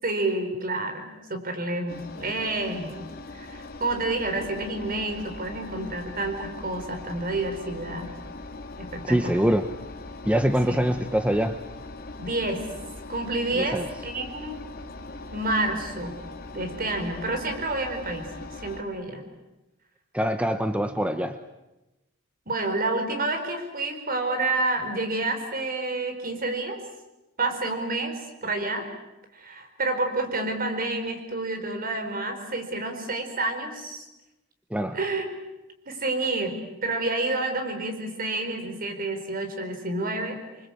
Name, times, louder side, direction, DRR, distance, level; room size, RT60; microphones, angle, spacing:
voice 1, 0.0-3.0 3.3-8.1 8.8-9.5 10.7-10.8 12.2-12.6 13.1-14.6 15.3-16.1 16.5-19.2 22.5-26.8 27.4-28.9 29.3-34.1 34.9-35.3 35.9-40.4, right 2 dB, 40° right, 6 dB, 4.5 m, -29 dB
Engine, 1.9-18.8, left 2 dB, 45° left, 2.6 m, -40 dB
voice 2, 9.0-9.7 10.2-11.6 13.6-13.8 20.1-21.4 34.7-35.0, equal, 5° right, 9 dB, 0.8 m, -24 dB
27.0 x 24.0 x 8.5 m, 1.0 s
head